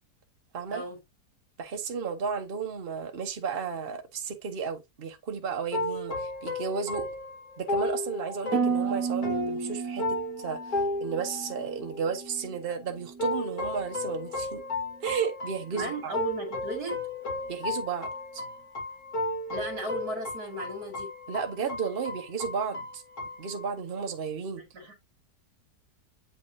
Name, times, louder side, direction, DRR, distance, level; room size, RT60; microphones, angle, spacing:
voice 1, 1.6-7.1 7.6-14.6 15.0-16.1 17.5-18.4 21.3-23.0 23.4-24.6, right 6 dB, 40° right, 1.2 m, -33 dB
sound 1, 5.7-12.3 13.2-24.1, left 2 dB, 65° left, 2.5 m, -34 dB
Harp, 8.5-12.6 12.9-13.5 14.0-14.3, right 6 dB, 85° right, 1.9 m, -33 dB
voice 2, 15.7-17.0 19.5-21.1 24.6-24.9, right 1 dB, 65° right, 2.8 m, -35 dB
7.8 x 5.5 x 2.7 m
omnidirectional pair, 1.8 m